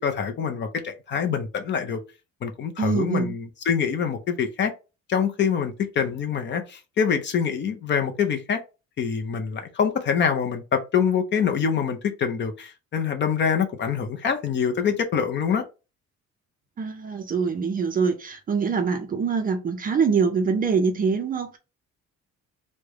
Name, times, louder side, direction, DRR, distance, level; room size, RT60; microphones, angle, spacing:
voice 1, 0.0-2.0 2.4-4.7 5.1-8.6 9.0-15.6, left 7 dB, 40° left, 0.5 m, -25 dB
voice 2, 2.8-3.3 16.8-21.6, right 5 dB, 30° right, 0.4 m, -24 dB
3.2 x 2.1 x 3.4 m
cardioid pair, 175°, 29 cm